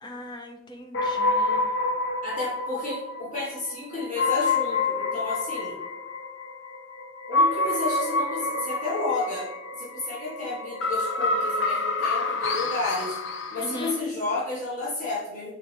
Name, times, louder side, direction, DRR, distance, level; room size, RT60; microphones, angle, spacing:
voice 1, 0.0-1.7 13.6-14.0, equal, 20° left, 3 dB, 0.7 m, -39 dB
sound 1, 0.9-14.0, left 3 dB, 55° left, 0.5 m, -28 dB
voice 2, 2.2-5.8 7.3-9.5 9.8-13.2 13.5-15.5, left 2 dB, 35° left, -7 dB, 1.5 m, -31 dB
6.7 x 4.1 x 3.4 m, 0.98 s
head